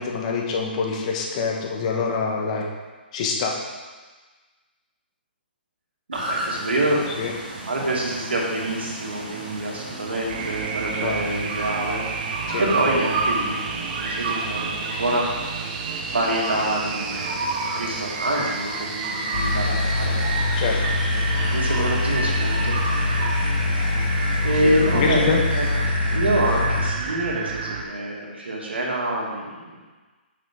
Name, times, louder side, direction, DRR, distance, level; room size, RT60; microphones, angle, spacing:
voice 1, 0.0-2.6 3.1-3.5 7.2-7.3 11.0-11.1 12.5-12.6 20.6-20.8 24.6-25.4, left 5 dB, 40° left, 0 dB, 1.3 m, -25 dB
sound 1, 6.1-25.8, right 2 dB, 55° right, 2.3 m, -33 dB
voice 2, 6.1-7.0 7.4-12.0 12.6-15.3 16.1-17.4 17.7-20.5 21.5-22.7 23.0-23.2 24.4-25.7 26.1-29.8, right 1 dB, 85° right, -3 dB, 2.1 m, -26 dB
sound 2, 10.3-27.8, right 5 dB, 35° right, 0.7 m, -31 dB
sound 3, 19.3-26.9, left 3 dB, 60° left, 1.2 m, -24 dB
7.6 x 6.0 x 3.7 m, 1.3 s
hypercardioid pair, 145°, 6 cm